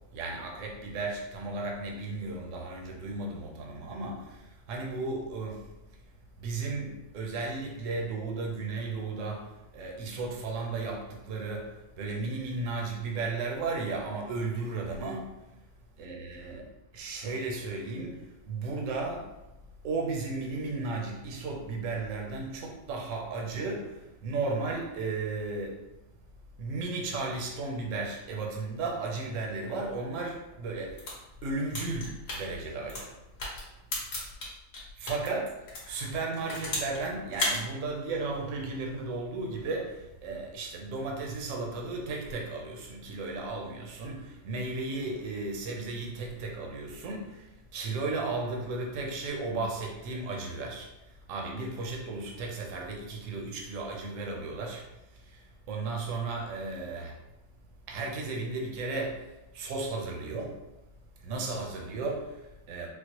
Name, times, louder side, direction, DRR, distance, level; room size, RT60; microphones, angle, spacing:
voice 1, 0.0-5.7 6.4-15.6 16.0-16.7 16.9-19.4 19.8-25.9 26.6-33.1 35.0-35.5 35.9-57.2 57.9-60.6 61.2-62.9, right 3 dB, 65° right, 0 dB, 0.8 m, -35 dB
sound 1, 30.9-35.3 35.7-37.0 37.3-37.6, left 2 dB, 50° left, 1.3 m, -35 dB
4.4 x 2.1 x 2.8 m, 0.95 s
omnidirectional pair, 2.0 m